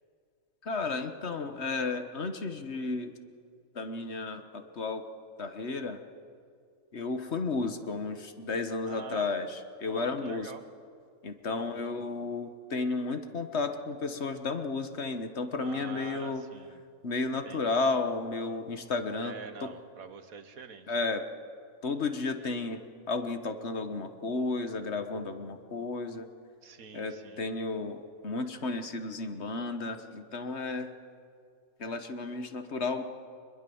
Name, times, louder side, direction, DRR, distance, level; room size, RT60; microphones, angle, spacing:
voice 1, 0.6-3.2 3.7-5.0 5.4-6.0 6.9-10.5 11.2-16.4 17.0-19.4 20.9-21.2 21.8-22.8 23.1-26.3 26.9-30.9 31.8-33.0, left 3 dB, 55° left, 8 dB, 1.5 m, -33 dB
voice 2, 8.8-9.3 9.8-10.6 11.5-11.9 15.6-16.8 17.4-17.8 19.2-21.0 26.6-27.4, right 5 dB, 80° right, 10 dB, 1.7 m, -45 dB
23.0 x 21.5 x 7.1 m, 2.3 s
omnidirectional pair, 1.4 m